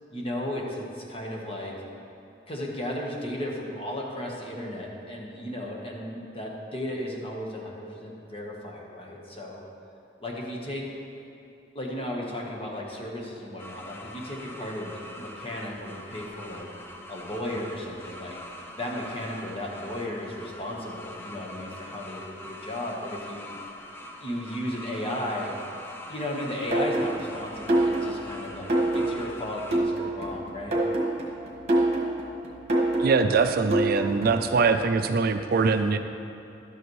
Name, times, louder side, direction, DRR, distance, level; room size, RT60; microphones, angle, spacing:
voice 1, 0.1-1.7 2.5-9.6 10.2-10.9 11.7-16.7 17.1-18.3 18.7-23.5 24.2-25.5 26.1-30.8, left 1 dB, 30° left, -1 dB, 1.2 m, -35 dB
sound 1, 13.6-29.8, left 1 dB, 15° left, 0.5 m, -43 dB
sound 2, 26.7-34.5, right 1 dB, 40° right, 1.6 m, -26 dB
voice 2, 33.0-36.0, right 4 dB, 55° right, 8 dB, 0.4 m, -23 dB
12.0 x 8.0 x 3.1 m, 2.8 s
head